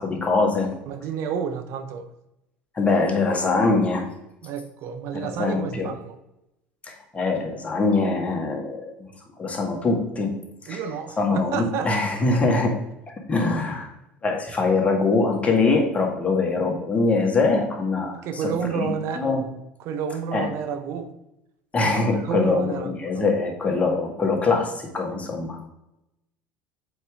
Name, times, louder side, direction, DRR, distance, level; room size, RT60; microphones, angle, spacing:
voice 1, 0.0-0.8 2.8-4.0 5.1-5.9 6.8-9.1 9.4-10.3 10.7-10.8 11.2-12.7 13.1-13.9 14.2-18.4 18.7-18.9 19.2-19.4 20.3-20.5 21.7-25.7, left 3 dB, 25° left, 0 dB, 1.9 m, -23 dB
voice 2, 0.9-2.1 4.4-6.2 10.7-11.9 18.2-19.3 19.8-21.1 21.8-22.9, right 7 dB, 60° right, 8 dB, 0.7 m, -30 dB
7.6 x 4.7 x 3.7 m, 0.89 s
hypercardioid pair, 70°, 5 cm